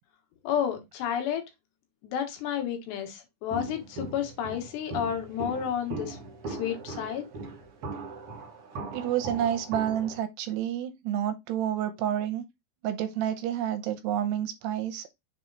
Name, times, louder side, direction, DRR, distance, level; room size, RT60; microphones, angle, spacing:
voice 1, 0.5-1.4 2.0-6.2 6.5-7.2, left 9 dB, 80° left, 3.5 m, -31 dB
Walk footsteps, 3.5-10.2, right 3 dB, 60° right, 1.5 m, -39 dB
voice 2, 8.9-12.4 12.8-15.2, right 10 dB, 80° right, 2.8 m, -29 dB
7.0 x 3.5 x 3.9 m
omnidirectional pair, 4.9 m